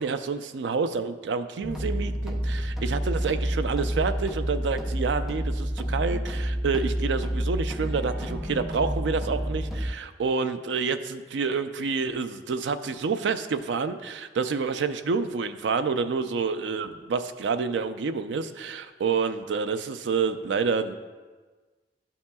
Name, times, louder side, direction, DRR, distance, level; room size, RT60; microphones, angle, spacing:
voice 1, 0.0-20.9, right 5 dB, 80° right, 10 dB, 0.4 m, -28 dB
sound 1, 1.6-9.9, equal, ahead, 0.5 m, -29 dB
11.5 x 5.7 x 2.3 m, 1.4 s
head